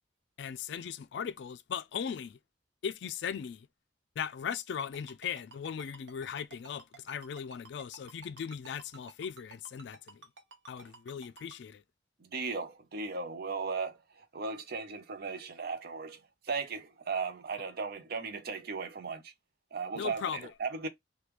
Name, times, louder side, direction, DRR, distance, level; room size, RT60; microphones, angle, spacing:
voice 1, 0.4-2.4 2.8-3.7 4.2-10.2 10.7-11.8 20.0-20.5, left 7 dB, 65° left, 0.3 m, -38 dB
Ringtone, 4.8-11.6, right 4 dB, 85° right, 1.0 m, -52 dB
voice 2, 12.2-16.2 16.4-19.3 19.7-20.2 20.6-20.9, right 4 dB, 55° right, 0.6 m, -36 dB
3.0 x 2.3 x 3.3 m
head